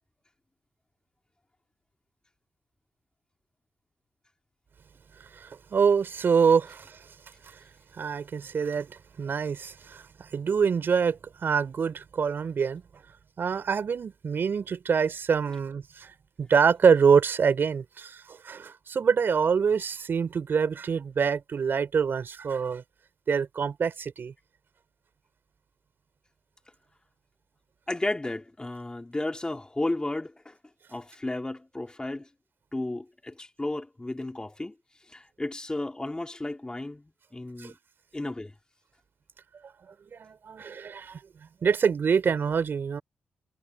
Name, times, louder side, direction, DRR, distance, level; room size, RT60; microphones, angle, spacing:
voice 1, 5.4-7.0 8.0-12.8 13.4-16.1 16.4-22.8 23.3-24.3 37.6-37.7 40.1-41.2 41.6-43.0, right 6 dB, 60° right, 4.3 m, -25 dB
voice 2, 27.9-30.6 30.9-32.3 32.7-34.7 35.1-37.8 38.1-38.5, left 2 dB, 20° left, 3.1 m, -33 dB
supercardioid pair, 55°, 4 cm